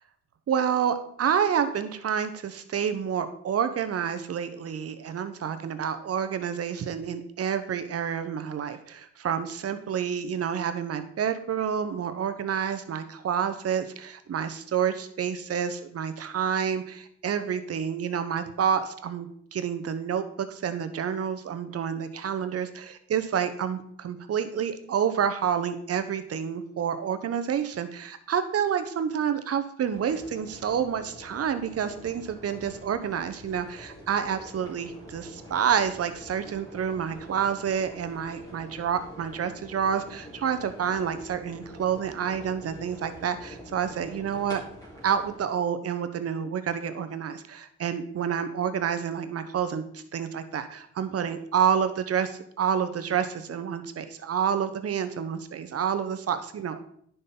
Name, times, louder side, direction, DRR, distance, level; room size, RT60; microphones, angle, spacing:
voice 1, 0.5-44.6 45.0-56.8, right 8 dB, 50° right, 10 dB, 1.0 m, -29 dB
sound 1, 29.9-45.4, left 1 dB, 10° left, 3.7 m, -46 dB
10.0 x 5.5 x 3.9 m, 0.65 s
cardioid pair, 90°, 30 cm